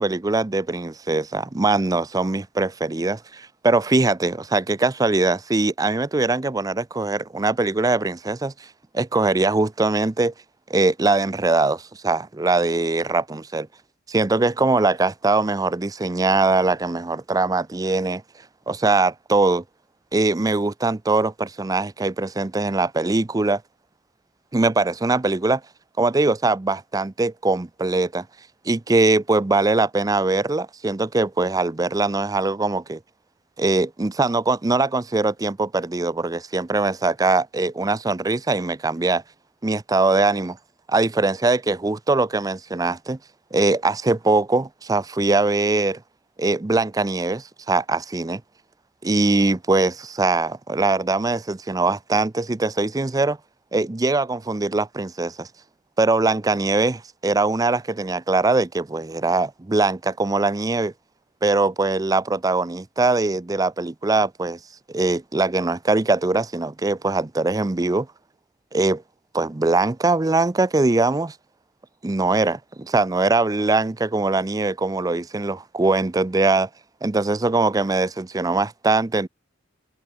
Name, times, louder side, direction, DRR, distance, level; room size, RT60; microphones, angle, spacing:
voice 1, 0.0-8.7 8.9-10.3 10.7-13.7 14.1-18.2 18.7-19.6 20.1-23.6 24.5-25.6 26.0-28.3 28.7-33.0 33.6-39.2 39.6-40.6 40.9-43.2 43.5-46.0 46.4-48.4 49.0-53.4 53.7-55.5 56.0-60.9 61.4-64.6 64.9-68.1 68.7-69.0 69.3-71.3 72.0-76.7 77.0-79.3, right 3 dB, 20° right, 0.5 m, -22 dB
open air
head